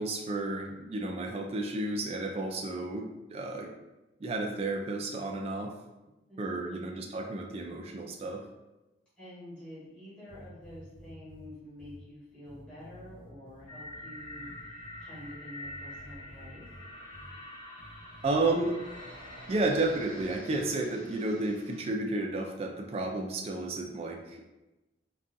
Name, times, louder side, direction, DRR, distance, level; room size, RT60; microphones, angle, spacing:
voice 1, 0.0-3.7 4.2-5.7 6.4-8.4 18.2-18.8 19.5-24.4, right 2 dB, 30° right, 3 dB, 0.3 m, -32 dB
voice 2, 6.3-7.1 9.2-16.7, left 1 dB, 5° left, -13 dB, 1.1 m, -48 dB
sound 1, 10.3-11.5 11.8-12.0 12.4-15.3 15.6-16.8 17.1-17.3 17.8-20.6, equal, 65° left, 1.0 m, -52 dB
sound 2, 13.7-21.8, left 1 dB, 25° left, 0.8 m, -46 dB
3.6 x 2.3 x 2.6 m, 1.0 s
head